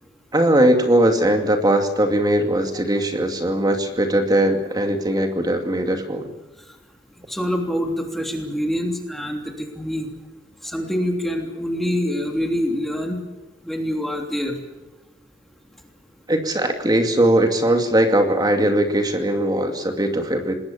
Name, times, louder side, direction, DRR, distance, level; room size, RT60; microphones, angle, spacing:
voice 1, 0.3-6.3 16.3-20.6, right 1 dB, 20° right, 5 dB, 2.4 m, -19 dB
voice 2, 7.3-10.1 10.6-13.2 13.6-14.6, equal, ahead, 2 dB, 3.1 m, -25 dB
27.0 x 20.5 x 7.2 m, 1.0 s
head